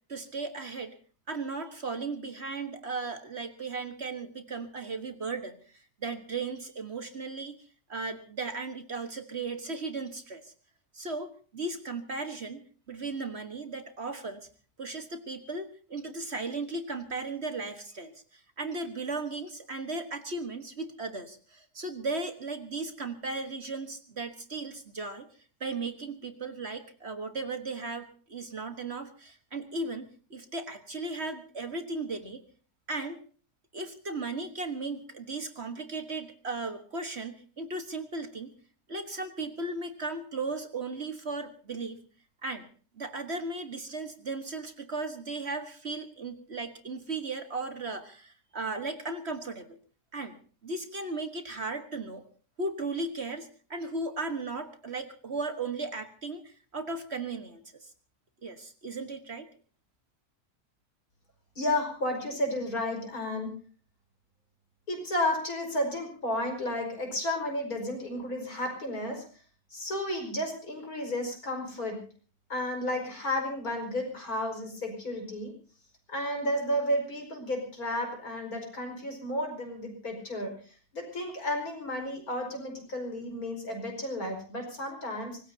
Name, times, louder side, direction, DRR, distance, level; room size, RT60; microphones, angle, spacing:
voice 1, 0.1-0.9 1.3-7.6 7.9-10.5 10.9-14.4 14.8-25.3 25.6-32.4 32.9-33.2 33.7-38.5 38.9-42.0 42.4-42.7 42.9-49.8 50.1-50.4 50.6-52.2 52.6-57.9 58.4-59.5, right 3 dB, 45° right, 8 dB, 1.7 m, -36 dB
voice 2, 61.6-63.5 64.9-69.2 69.7-72.0 72.5-75.5 76.1-85.4, left 1 dB, 65° left, 3 dB, 5.6 m, -32 dB
25.0 x 19.5 x 2.8 m, 0.40 s
omnidirectional pair, 1.7 m